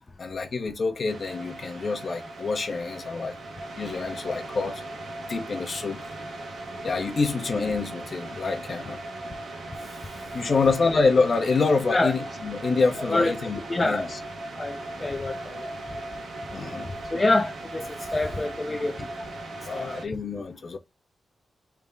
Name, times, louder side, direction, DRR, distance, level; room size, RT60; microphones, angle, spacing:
voice 1, 0.2-3.4 3.8-4.8 5.3-6.0 6.8-9.0 10.3-14.2 16.5-16.9 19.0-19.1 19.6-20.8, left 4 dB, 55° left, 0.9 m, -26 dB
sound 1, 1.1-20.1, right 2 dB, 85° right, 1.3 m, -38 dB
voice 2, 13.0-13.3 13.7-14.1 14.6-15.7 17.1-19.0 19.7-20.0, left 2 dB, 30° left, 0.6 m, -26 dB
3.5 x 2.2 x 3.7 m
cardioid pair, 65°, 0 cm